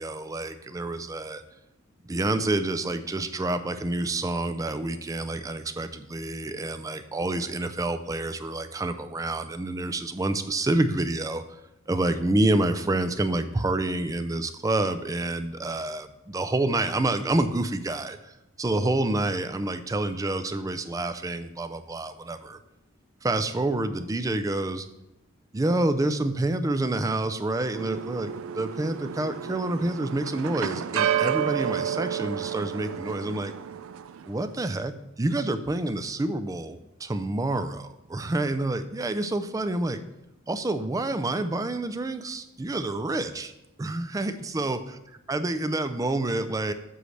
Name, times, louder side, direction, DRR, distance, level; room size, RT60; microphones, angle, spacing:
voice 1, 0.0-1.4 2.0-11.4 11.9-22.6 23.2-24.9 25.5-33.5 34.3-40.0 40.5-43.5 43.8-44.8 45.3-46.7, right 2 dB, 15° right, 10 dB, 0.4 m, -28 dB
sound 1, 27.7-34.3, right 9 dB, 85° right, 0.4 m, -31 dB
7.8 x 3.2 x 6.4 m, 0.88 s
head